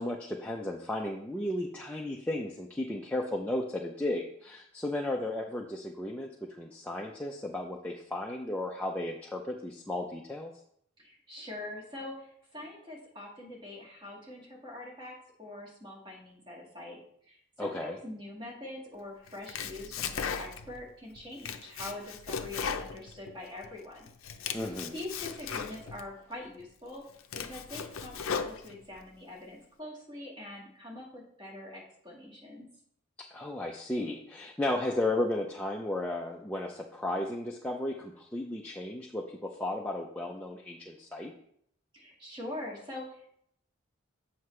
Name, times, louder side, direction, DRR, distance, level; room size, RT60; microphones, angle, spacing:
voice 1, 0.0-10.5 17.6-18.0 24.5-24.9 33.3-41.3, left 1 dB, 5° left, -1 dB, 0.4 m, -34 dB
voice 2, 11.0-24.1 24.9-27.0 27.3-32.7 41.9-43.3, left 1 dB, 20° right, -3 dB, 1.8 m, -44 dB
Domestic sounds home sounds, 19.3-20.8 21.2-23.7 24.1-26.0 26.6-26.7 27.1-29.0, left 6 dB, 75° left, 0.5 m, -37 dB
7.7 x 5.6 x 3.2 m, 0.68 s
head